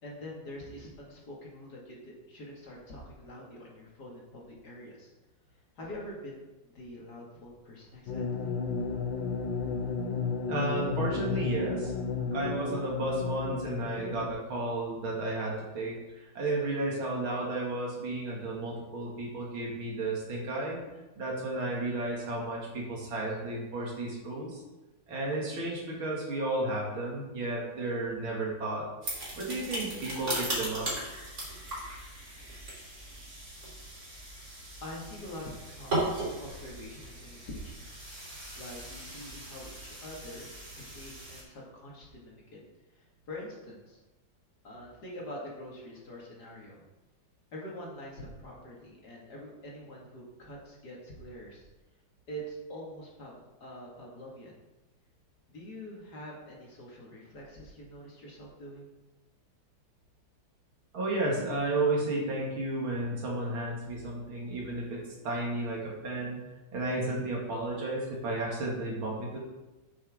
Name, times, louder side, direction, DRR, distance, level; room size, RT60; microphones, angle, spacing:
voice 1, 0.0-5.1 5.8-8.6 34.3-34.4 34.8-37.9 38.6-42.6 42.9-44.0 44.6-46.8 47.5-51.7 52.3-54.5 55.5-58.9, equal, 50° left, -3 dB, 2.5 m, -45 dB
sound 1, 8.1-14.3, left 5 dB, 70° left, 1.6 m, -33 dB
voice 2, 10.5-11.9 12.3-20.8 21.2-24.6 25.1-28.9 29.3-30.9 60.9-66.4 66.7-69.4, right 2 dB, 80° right, -3 dB, 2.9 m, -33 dB
sound 2, 29.0-41.4, right 1 dB, 45° right, 3.8 m, -38 dB
8.6 x 8.2 x 3.6 m, 1.1 s
omnidirectional pair, 2.2 m